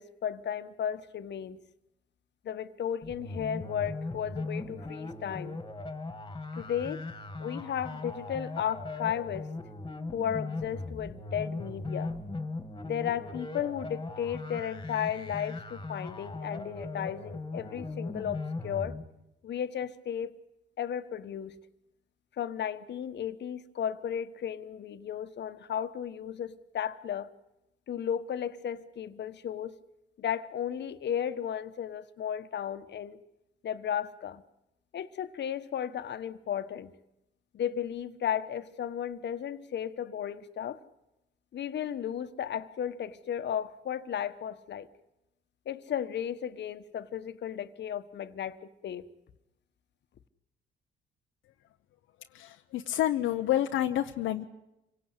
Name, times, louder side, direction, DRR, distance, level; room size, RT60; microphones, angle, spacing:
voice 1, 0.0-1.6 2.4-5.6 6.6-7.0 7.4-9.5 10.1-12.1 12.8-18.9 19.4-20.4 20.8-21.5 22.4-27.3 27.9-29.7 30.2-33.2 33.6-34.4 34.9-36.9 37.5-40.8 41.5-44.9 45.6-49.1, left 9 dB, 60° left, 1.3 m, -34 dB
sound 1, 3.0-19.0, left 2 dB, 20° left, 2.3 m, -39 dB
voice 2, 52.3-54.4, left 12 dB, 85° left, 0.9 m, -29 dB
26.5 x 18.0 x 8.2 m
cardioid pair, 90°, 20 cm